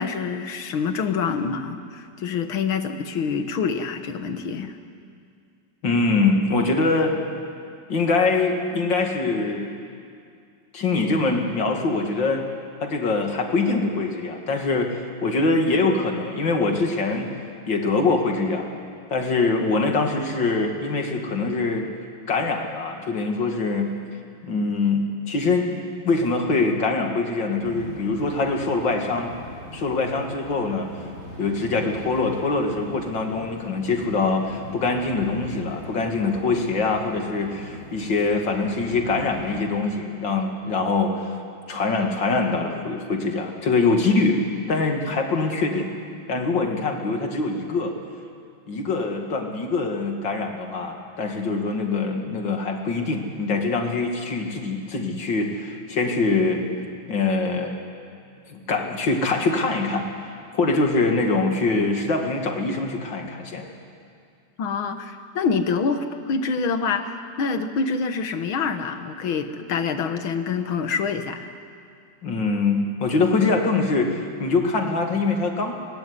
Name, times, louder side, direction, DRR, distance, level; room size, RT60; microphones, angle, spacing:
voice 1, 0.0-4.8 19.7-20.0 64.6-71.5, left 5 dB, 80° left, 8 dB, 2.2 m, -26 dB
voice 2, 5.8-7.1 7.9-9.7 10.7-12.5 12.8-17.3 17.7-18.7 19.1-21.9 22.3-23.9 24.4-29.3 29.7-30.9 31.4-41.4 41.7-44.4 44.7-45.9 46.3-47.9 48.7-56.6 57.1-57.7 58.5-60.1 60.5-63.7 72.2-75.7, left 3 dB, 65° left, 3 dB, 3.0 m, -23 dB
sound 1, 27.6-39.6, equal, 30° right, 6.5 m, -41 dB
25.5 x 19.5 x 9.9 m, 2.3 s
omnidirectional pair, 2.2 m